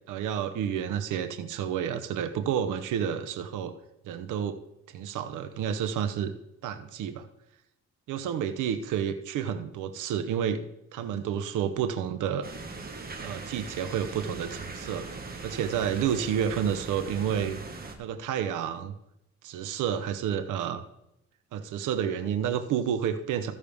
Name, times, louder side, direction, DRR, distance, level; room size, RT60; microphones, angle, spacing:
voice 1, 0.1-3.8 4.0-4.6 4.9-6.3 6.6-7.3 8.1-10.7 10.9-12.5 13.2-15.1 15.4-17.6 18.0-18.9 19.4-20.8 21.5-23.5, right 8 dB, 85° right, 9 dB, 0.8 m, -30 dB
sound 1, 12.4-18.0, right 3 dB, 30° right, 1.6 m, -40 dB
15.0 x 6.5 x 3.5 m, 0.84 s
cardioid pair, 90°, 30 cm